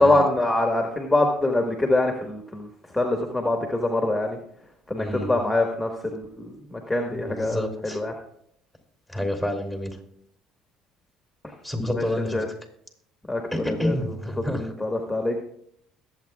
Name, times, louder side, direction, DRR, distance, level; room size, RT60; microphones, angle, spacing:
voice 1, 0.0-4.4 4.9-8.1 11.4-11.6 11.9-12.5 13.3-13.4 13.7-14.2 14.5-15.4, left 2 dB, 5° left, 2 dB, 1.4 m, -24 dB
voice 2, 5.0-5.4 7.1-8.0 9.1-10.0 11.6-12.4 13.5-14.7, left 1 dB, 10° right, 3 dB, 2.9 m, -29 dB
21.5 x 8.0 x 2.4 m, 0.70 s
hypercardioid pair, 70°, 0 cm